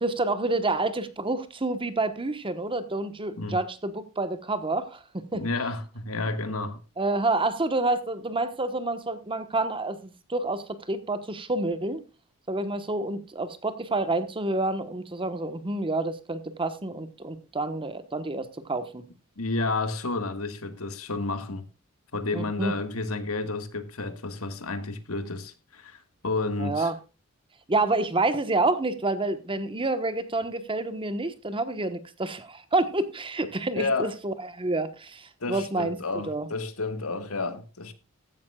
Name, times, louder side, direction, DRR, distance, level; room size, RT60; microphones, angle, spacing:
voice 1, 0.0-5.5 7.0-12.0 12.5-19.0 22.3-22.7 26.6-26.9 27.7-36.0 36.2-36.5, right 2 dB, 25° right, 1.1 m, -28 dB
voice 2, 5.4-6.8 19.4-21.6 22.1-26.9 33.7-34.1 35.4-37.9, left 3 dB, 80° left, 1.7 m, -31 dB
15.0 x 11.5 x 2.3 m
head